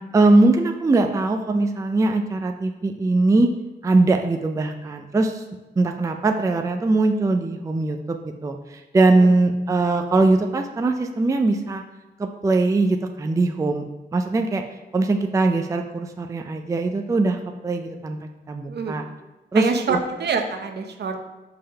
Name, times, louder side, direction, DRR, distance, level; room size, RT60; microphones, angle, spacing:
voice 1, 0.1-3.5 3.8-5.4 5.8-8.2 8.4-11.8 12.2-13.8 14.1-14.6 14.9-18.2 18.5-19.0 19.5-20.0, right 2 dB, 15° right, 5 dB, 0.4 m, -21 dB
voice 2, 18.7-19.0 19.5-21.4, right 5 dB, 65° right, 5 dB, 0.7 m, -26 dB
5.4 x 3.5 x 5.7 m, 1.1 s
wide cardioid pair, 115°, 19 cm